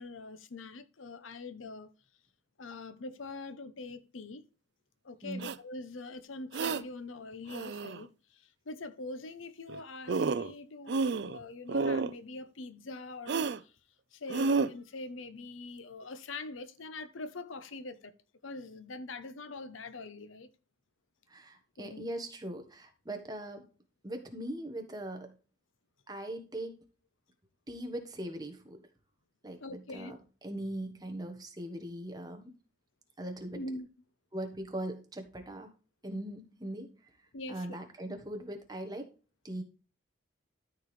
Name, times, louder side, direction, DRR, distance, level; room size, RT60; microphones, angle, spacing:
voice 1, 0.0-1.9 2.6-4.4 5.0-13.7 14.1-18.1 18.4-20.5 21.8-22.0 29.6-30.2 33.5-33.9 37.3-37.8, left 3 dB, 85° left, 0.9 m, -43 dB
sound 1, 5.4-5.6 6.5-6.8 7.5-8.0 9.7-9.8 10.1-10.5 10.9-11.4 11.7-12.1 13.3-13.6 14.3-14.7, right 4 dB, 60° right, 0.4 m, -30 dB
voice 2, 21.3-23.7 24.0-25.3 26.1-26.8 27.7-28.8 29.4-30.2 30.4-32.5 33.2-33.6 34.3-35.7 36.0-37.0 37.5-39.1 39.4-39.6, right 1 dB, 20° right, 1.3 m, -40 dB
13.0 x 4.5 x 3.3 m
head